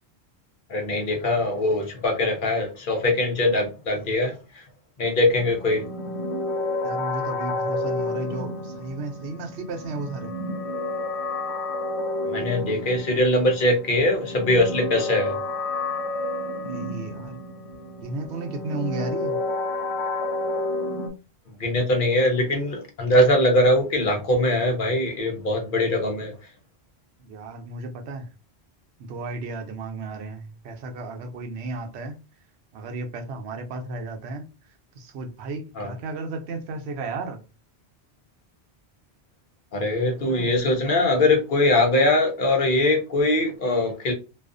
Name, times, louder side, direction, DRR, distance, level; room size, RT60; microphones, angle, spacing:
voice 1, 0.7-4.3 5.0-5.8 12.3-15.4 21.6-26.3 35.8-35.9 39.7-44.1, left 1 dB, 55° left, 0.8 m, -22 dB
sound 1, 5.3-21.1, left 2 dB, 85° left, 0.9 m, -30 dB
voice 2, 6.8-10.3 16.6-17.4 18.0-19.4 27.2-28.3 29.0-32.2 32.7-34.4 35.0-37.4 40.1-40.6, right 2 dB, 80° right, 0.8 m, -34 dB
2.4 x 2.3 x 2.4 m
omnidirectional pair, 1.1 m